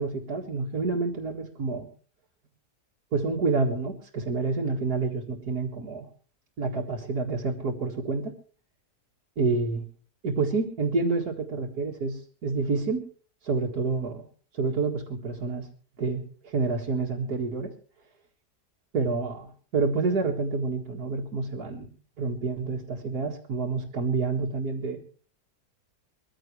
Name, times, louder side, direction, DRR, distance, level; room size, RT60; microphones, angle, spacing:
voice 1, 0.0-1.9 3.1-6.1 6.6-8.3 9.4-9.8 10.2-13.0 13.4-14.2 14.5-15.7 16.0-17.7 18.9-21.9 22.2-25.0, right 4 dB, 70° right, -3 dB, 2.4 m, -28 dB
22.5 x 15.0 x 3.2 m, 0.39 s
omnidirectional pair, 1.7 m